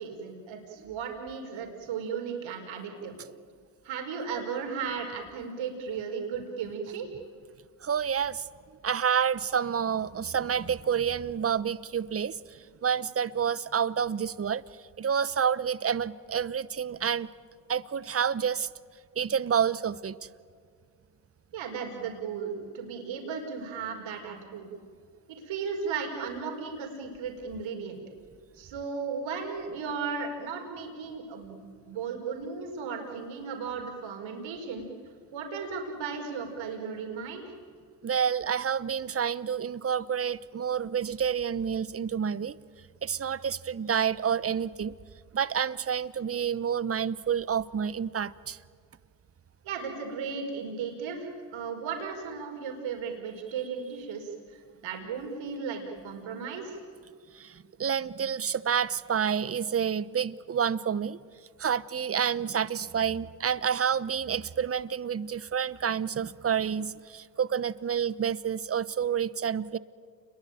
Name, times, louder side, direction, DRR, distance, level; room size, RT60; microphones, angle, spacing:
voice 1, 0.0-3.1 3.8-7.1 21.5-24.7 25.3-28.0 28.5-31.6 31.9-34.9 35.3-37.4 49.6-54.6 54.8-56.8, right 5 dB, 65° right, 1 dB, 5.1 m, -35 dB
voice 2, 7.8-8.5 8.8-14.6 15.0-17.3 17.7-18.7 19.2-20.2 38.0-42.6 43.0-44.9 45.3-48.6 57.3-61.2 61.6-69.8, right 7 dB, 30° right, 18 dB, 1.0 m, -29 dB
29.0 x 22.0 x 9.3 m, 2.1 s
supercardioid pair, 70°, 50 cm